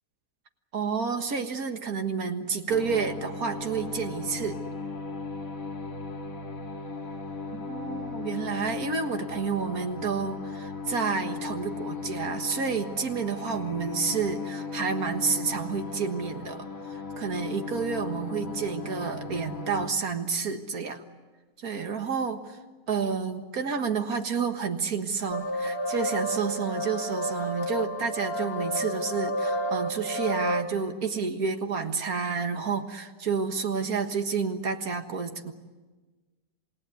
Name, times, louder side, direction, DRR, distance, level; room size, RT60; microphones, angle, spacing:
voice 1, 0.7-4.6 7.5-21.0 21.6-22.6 22.9-35.5, right 5 dB, 80° right, 6 dB, 2.1 m, -30 dB
sound 1, 2.7-19.9, left 4 dB, 65° left, 2.4 m, -37 dB
sound 2, 25.3-30.6, equal, 20° left, 1.4 m, -30 dB
28.0 x 18.5 x 9.4 m, 1.3 s
omnidirectional pair, 1.5 m